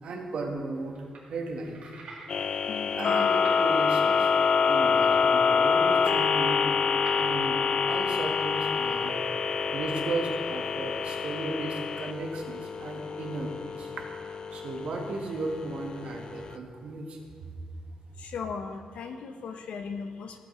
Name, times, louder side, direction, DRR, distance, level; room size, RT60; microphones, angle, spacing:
voice 1, 0.0-1.0 1.3-1.8 3.0-4.3 4.7-6.6 7.1-7.6 7.9-9.2 9.7-13.9 14.2-17.2, right 2 dB, 60° right, 1 dB, 1.4 m, -35 dB
sound 1, 0.9-1.2 1.5-3.7 4.1-4.3 4.6-5.4 5.7-6.1 6.4-6.5 7.1-7.2, right 4 dB, 85° right, 2.4 m, -46 dB
sound 2, 2.3-16.5, left 5 dB, 40° left, 0.4 m, -27 dB
voice 2, 2.7-3.3 18.2-20.4, left 5 dB, 80° left, 6 dB, 0.8 m, -37 dB
14.5 x 8.5 x 3.2 m, 2.3 s
wide cardioid pair, 165°, 2 cm